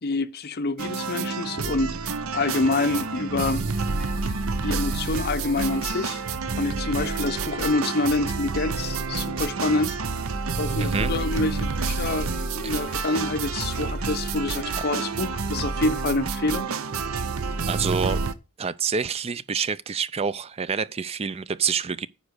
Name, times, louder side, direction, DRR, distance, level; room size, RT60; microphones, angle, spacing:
voice 1, 0.0-3.7 4.6-6.2 6.6-10.0 10.6-16.7, left 2 dB, 45° left, 0.7 m, -27 dB
sound 1, 0.8-18.3, right 4 dB, 65° right, 0.8 m, -29 dB
sound 2, 2.3-16.3, equal, 5° left, 3.4 m, -49 dB
voice 2, 10.8-11.1 12.6-12.7 17.7-18.2 18.6-22.1, right 6 dB, 30° right, 0.4 m, -27 dB
9.6 x 5.1 x 6.5 m
head